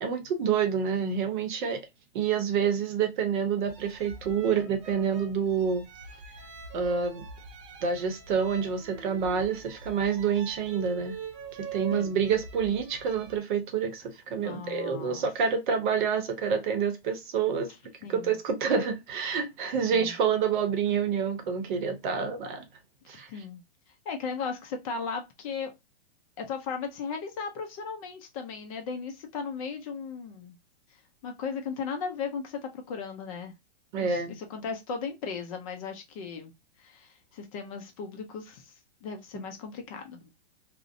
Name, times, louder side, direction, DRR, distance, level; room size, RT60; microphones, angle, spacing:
voice 1, 0.0-1.8 2.1-5.8 6.7-7.3 7.8-11.2 11.7-17.7 18.1-22.6 23.1-23.3 33.9-34.4, right 6 dB, 50° right, 0.7 m, -28 dB
sound 1, 3.7-13.4, right 5 dB, 30° right, 0.4 m, -44 dB
voice 2, 14.4-15.3 18.0-18.4 19.8-20.1 23.1-23.6 24.1-25.7 26.4-30.6 31.2-33.5 34.0-36.5 36.8-38.7 39.0-40.2, left 5 dB, 35° left, 0.5 m, -36 dB
2.5 x 2.1 x 2.5 m
hypercardioid pair, 140°, 31 cm